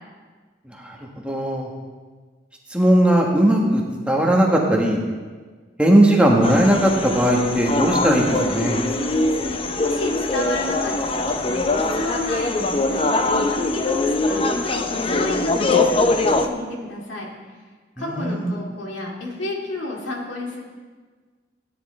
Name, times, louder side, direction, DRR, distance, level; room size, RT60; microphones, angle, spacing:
voice 1, 0.7-1.0 1.2-1.7 2.7-5.0 5.8-8.8 18.0-18.5, right 1 dB, 5° right, -1 dB, 1.3 m, -18 dB
sound 1, 6.4-16.5, left 2 dB, 30° left, 0.6 m, -22 dB
voice 2, 8.9-11.6 11.9-17.3 18.0-20.6, left 2 dB, 80° left, -2 dB, 2.4 m, -31 dB
17.0 x 10.0 x 3.2 m, 1.4 s
head